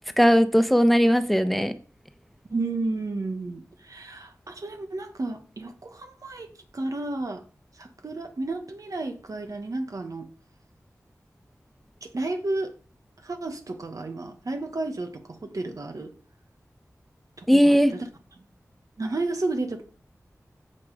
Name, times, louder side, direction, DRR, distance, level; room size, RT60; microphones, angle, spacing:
voice 1, 0.2-1.7 17.5-17.9, equal, ahead, 1.2 m, -18 dB
voice 2, 2.5-7.4 7.8-10.3 12.0-12.7 13.2-16.1 17.4-18.1 18.4-18.5 19.0-19.8, right 2 dB, 70° right, 1.8 m, -32 dB
15.5 x 5.7 x 5.0 m
wide cardioid pair, 50°, 6 cm